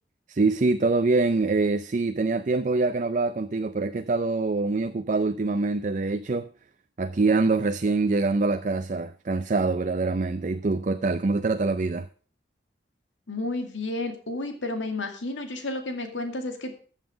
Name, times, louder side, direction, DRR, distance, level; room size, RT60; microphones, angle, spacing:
voice 1, 0.3-6.5 7.0-12.1, right 3 dB, 40° right, 0.5 m, -24 dB
voice 2, 13.3-16.8, left 2 dB, 90° left, 2.2 m, -31 dB
14.0 x 7.4 x 5.0 m
head